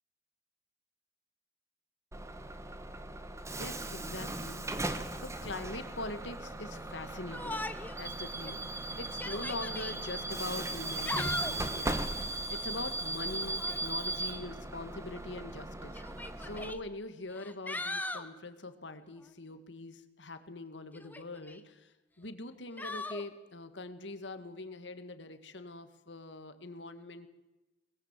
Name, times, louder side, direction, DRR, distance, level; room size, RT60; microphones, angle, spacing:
Bus / Alarm, 2.1-16.7, right 2 dB, 15° right, 1.4 m, -38 dB
voice 1, 3.6-4.7 5.2-16.0 16.4-21.9 22.2-27.3, left 2 dB, 70° left, 10 dB, 2.0 m, -43 dB
Yell, 7.3-8.0 8.4-8.5 9.1-10.0 10.8-11.7 13.4-13.8 15.0-15.1 16.0-16.8 17.3-18.3 20.9-21.6 22.8-23.2, left 2 dB, 10° left, 1.3 m, -39 dB
22.5 x 21.0 x 7.6 m, 1.0 s
head